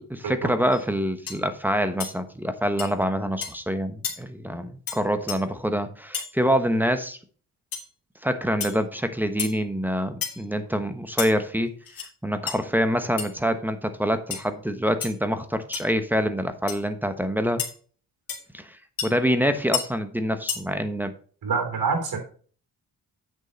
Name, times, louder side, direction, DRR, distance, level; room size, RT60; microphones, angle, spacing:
voice 1, 0.0-7.2 8.2-11.7 12.2-17.6 18.5-18.8 19.0-21.1, equal, 5° right, 9 dB, 1.1 m, -26 dB
sound 1, 0.7-0.9 1.3-1.4 2.0-2.1 2.8-2.9 3.4-3.6 4.0-4.2 4.9-5.0 5.3-5.4 6.1-6.3 7.7-7.9 8.6-8.8 9.4-9.6 10.2-10.5 11.2-11.3 11.9-12.1 12.5-12.6 13.2-13.3 14.3-14.5 15.0-15.1 15.7-15.9 16.7-16.8 17.6-17.7 18.3-18.4 19.0-19.1 19.7-19.8 20.5-20.6, left 7 dB, 70° left, 2.2 m, -30 dB
voice 2, 21.4-22.2, right 5 dB, 80° right, 4 dB, 3.3 m, -25 dB
8.3 x 6.6 x 4.0 m, 0.43 s
cardioid pair, 95°, 36 cm